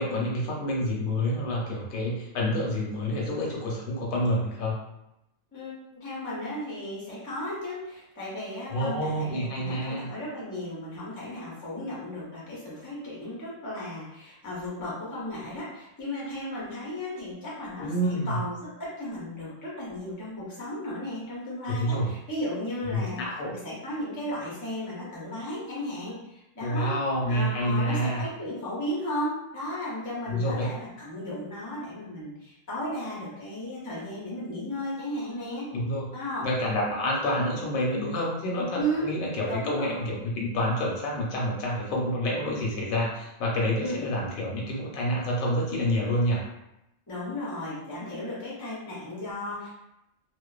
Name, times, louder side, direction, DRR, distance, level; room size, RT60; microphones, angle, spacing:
voice 1, 0.0-4.7 8.7-10.1 17.8-18.4 21.7-22.1 22.9-23.5 26.6-28.2 30.3-30.7 35.7-36.1 36.4-46.4, equal, 80° left, -3 dB, 1.1 m, -28 dB
voice 2, 5.5-23.2 23.5-27.0 27.3-35.7 36.1-36.5 38.7-39.2 39.4-40.1 43.8-44.1 47.1-49.7, equal, 25° left, -6 dB, 0.4 m, -35 dB
2.5 x 2.2 x 2.3 m, 0.88 s
omnidirectional pair, 1.4 m